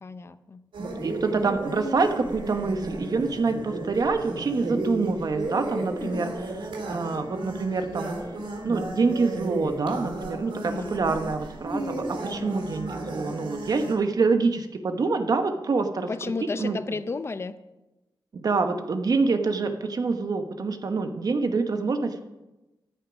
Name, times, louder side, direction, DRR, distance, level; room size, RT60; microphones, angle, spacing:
voice 1, 0.0-0.6 6.0-6.3 10.7-11.2 12.2-12.6 16.1-17.6, left 4 dB, 30° left, 13 dB, 0.6 m, -33 dB
sound 1, 0.7-13.9, right 2 dB, 90° right, 3.0 m, -34 dB
voice 2, 0.8-6.3 6.9-8.1 8.6-16.1 16.6-16.8 18.3-22.2, right 4 dB, 50° right, 7 dB, 1.0 m, -26 dB
14.0 x 9.3 x 6.2 m, 1.0 s
wide cardioid pair, 160°, 8 cm